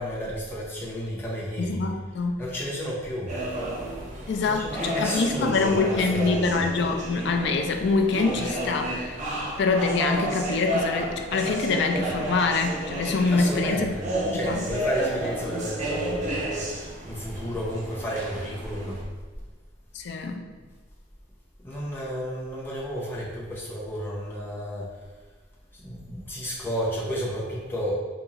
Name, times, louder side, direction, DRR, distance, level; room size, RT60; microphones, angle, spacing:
voice 1, 0.0-1.8 2.4-3.3 4.5-6.6 13.3-14.0 14.3-19.0 21.6-24.9 25.8-27.9, equal, 10° left, -7 dB, 0.8 m, -31 dB
voice 2, 1.6-2.4 4.3-9.2 9.6-13.9 14.2-14.6 19.9-20.5, left 4 dB, 60° left, 5 dB, 0.4 m, -25 dB
sound 1, 3.3-19.0, right 1 dB, 35° right, 0.6 m, -32 dB
2.9 x 2.7 x 3.8 m, 1.4 s
head